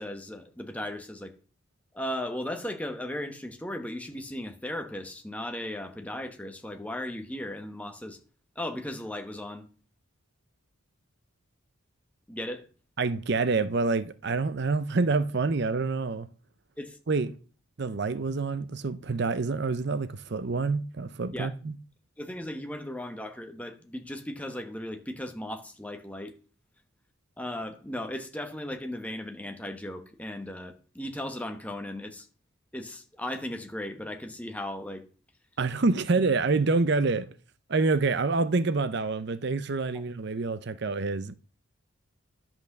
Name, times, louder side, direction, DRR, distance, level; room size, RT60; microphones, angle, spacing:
voice 1, 0.0-1.3 1.9-8.2 8.5-9.7 12.3-12.7 16.8-17.0 21.3-21.5 22.2-26.3 27.4-32.3 32.7-35.1, left 1 dB, 5° left, 1.0 m, -36 dB
voice 2, 13.0-16.3 17.1-17.3 17.8-21.8 35.6-37.3 37.7-41.3, right 3 dB, 50° right, 0.6 m, -27 dB
10.5 x 5.9 x 6.5 m
head